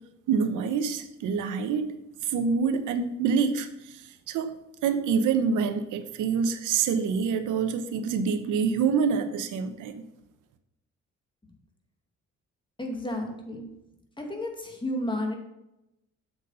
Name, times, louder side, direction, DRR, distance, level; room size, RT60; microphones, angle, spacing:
voice 1, 0.3-1.9 2.2-4.5 4.8-9.9, right 6 dB, 90° right, 9 dB, 1.0 m, -26 dB
voice 2, 12.8-13.6 14.2-15.4, left 1 dB, 15° left, 2 dB, 2.4 m, -32 dB
8.2 x 7.2 x 5.6 m, 0.89 s
cardioid pair, 90°, 30 cm